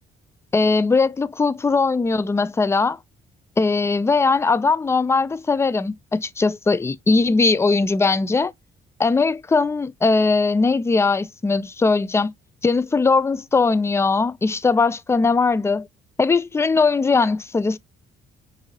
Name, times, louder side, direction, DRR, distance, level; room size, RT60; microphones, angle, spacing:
voice 1, 0.5-3.0 3.6-8.5 9.0-12.3 12.6-15.9 16.2-17.8, left 4 dB, 15° left, 0.3 m, -20 dB
5.8 x 2.6 x 2.7 m
cardioid pair, 90°, 20 cm